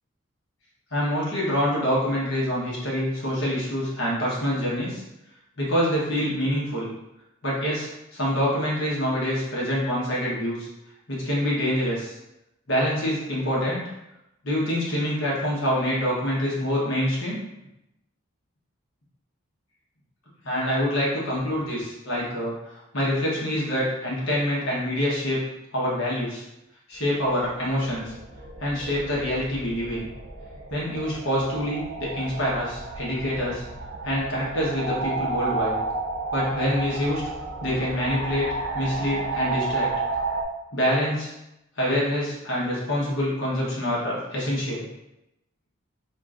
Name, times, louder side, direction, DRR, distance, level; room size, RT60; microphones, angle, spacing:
voice 1, 0.9-5.0 5.6-6.9 7.4-10.7 11.1-12.1 12.7-13.8 14.4-17.4 20.4-25.4 25.7-26.4 26.9-28.1 28.6-30.1 30.7-33.6 34.0-35.8 36.3-37.2 37.6-38.5 38.7-39.9 40.7-41.3 41.8-44.8, equal, 70° left, -6 dB, 1.2 m, -26 dB
sound 1, 27.2-40.4, right 3 dB, 80° right, 0.7 m, -32 dB
4.3 x 3.1 x 2.5 m, 0.89 s
head